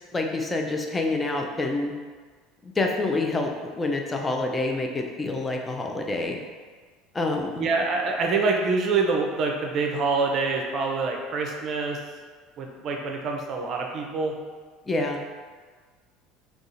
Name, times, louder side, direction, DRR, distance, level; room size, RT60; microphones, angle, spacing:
voice 1, 0.1-1.9 2.6-6.4 7.1-7.6 14.9-15.2, left 2 dB, 20° left, 2 dB, 0.5 m, -27 dB
voice 2, 7.6-12.0 12.6-14.3, right 4 dB, 40° right, 2 dB, 0.5 m, -26 dB
3.7 x 2.4 x 3.9 m, 1.5 s
figure-of-eight pair, 65°, 0 cm